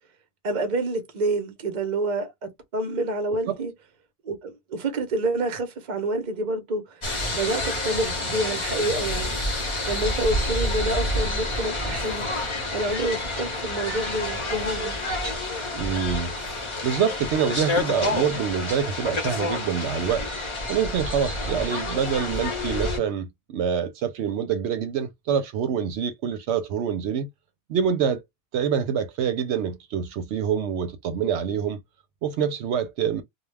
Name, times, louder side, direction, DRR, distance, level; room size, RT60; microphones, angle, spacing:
voice 1, 0.4-3.7 4.2-7.0 7.3-9.4 9.9-12.3 12.7-15.0, right 2 dB, 45° right, 0.8 m, -28 dB
sound 1, 7.0-23.0, left 1 dB, 30° left, 0.8 m, -28 dB
voice 2, 15.7-20.3 20.7-27.3 27.7-28.2 28.5-31.8 32.2-33.2, right 7 dB, 80° right, 0.8 m, -26 dB
2.2 x 2.2 x 3.2 m
omnidirectional pair, 1.2 m